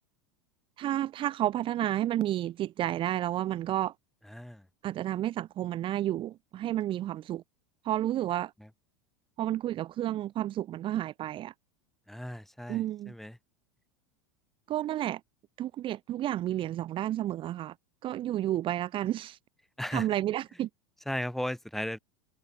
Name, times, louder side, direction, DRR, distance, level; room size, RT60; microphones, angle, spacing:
voice 1, 0.8-3.9 4.8-7.4 7.8-8.5 9.4-11.5 12.7-13.1 14.7-15.2 15.6-17.7 18.0-19.4 19.9-20.7, right 13 dB, 40° right, 1.8 m, -31 dB
voice 2, 4.3-4.7 12.1-13.4 19.8-20.1 21.1-22.0, equal, ahead, 5.5 m, -36 dB
hypercardioid pair, 85°, 13 cm